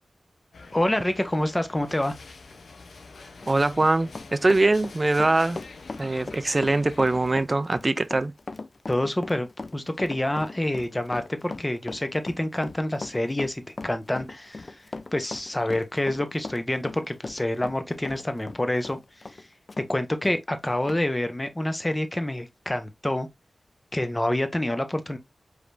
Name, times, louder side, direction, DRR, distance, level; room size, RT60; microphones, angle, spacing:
sound 1, 0.5-7.4, left 3 dB, 80° left, 0.6 m, -46 dB
voice 1, 0.7-2.1 8.9-14.8 15.1-19.0 19.8-23.3 23.9-25.2, left 1 dB, 20° left, 0.7 m, -27 dB
Run, 3.4-19.9 20.2-20.4 20.9-21.0, left 3 dB, 45° left, 0.3 m, -39 dB
voice 2, 3.5-5.6 6.0-8.3, right 2 dB, 35° right, 0.3 m, -22 dB
4.9 x 3.3 x 2.5 m
wide cardioid pair, 85°, 0 cm